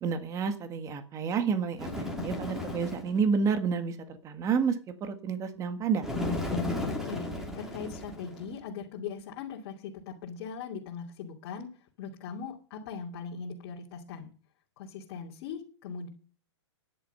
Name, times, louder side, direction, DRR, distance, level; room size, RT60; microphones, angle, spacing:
voice 1, 0.0-4.7 5.0-6.1, right 6 dB, 20° right, 9 dB, 1.7 m, -29 dB
Bird, 1.8-3.2 6.0-8.5, left 2 dB, 5° right, 3.4 m, -34 dB
voice 2, 6.8-7.3 7.5-14.3 14.8-16.1, left 6 dB, 45° left, -1 dB, 2.8 m, -40 dB
13.0 x 10.5 x 5.6 m, 0.40 s
hypercardioid pair, 150°, 15 cm